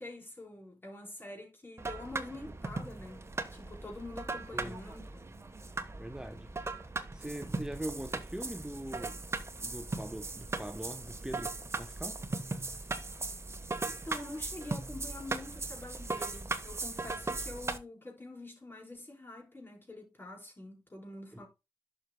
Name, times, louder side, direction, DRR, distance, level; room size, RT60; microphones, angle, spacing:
voice 1, 0.0-5.0 13.9-21.5, left 2 dB, 25° left, 4.7 m, -46 dB
sound 1, 1.8-17.8, right 3 dB, 35° right, 1.1 m, -38 dB
voice 2, 6.0-6.5 7.1-9.2 9.6-12.2 12.6-13.1 21.3-21.4, right 1 dB, 10° right, 0.9 m, -42 dB
11.5 x 6.1 x 2.2 m
supercardioid pair, 45°, 8 cm